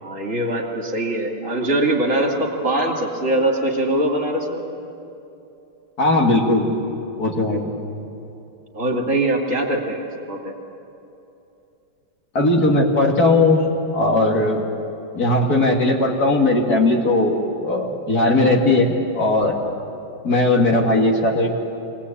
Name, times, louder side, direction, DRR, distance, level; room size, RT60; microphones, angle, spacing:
voice 1, 0.0-4.6 8.7-10.5, right 1 dB, 35° right, 0 dB, 2.8 m, -22 dB
voice 2, 6.0-6.7 7.2-7.7 12.3-13.6 13.9-14.6 15.1-19.5 20.2-21.5, left 2 dB, 45° left, 0 dB, 2.8 m, -18 dB
24.5 x 18.5 x 8.7 m, 2.8 s
omnidirectional pair, 2.3 m